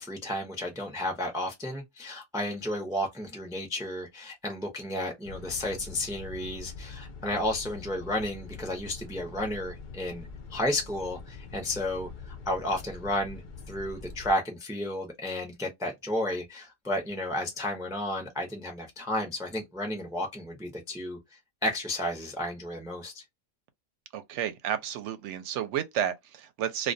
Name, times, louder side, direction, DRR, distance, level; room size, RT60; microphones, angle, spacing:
voice 1, 0.0-13.4 13.7-21.2 21.6-23.2, left 1 dB, 5° right, 0.3 m, -32 dB
sound 1, 5.2-14.3, left 4 dB, 60° left, 0.5 m, -44 dB
voice 2, 24.1-26.9, right 10 dB, 70° right, 0.8 m, -31 dB
2.2 x 2.2 x 2.5 m
omnidirectional pair, 1.3 m